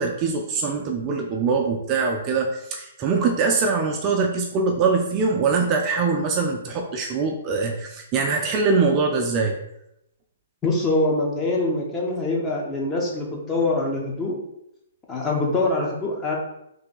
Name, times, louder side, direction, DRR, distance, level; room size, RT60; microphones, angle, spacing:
voice 1, 0.0-9.6, right 4 dB, 30° right, 2 dB, 0.5 m, -23 dB
voice 2, 10.6-14.3 15.1-16.4, left 2 dB, 20° left, -2 dB, 1.0 m, -24 dB
3.3 x 2.8 x 3.9 m, 0.81 s
hypercardioid pair, 135°, 0 cm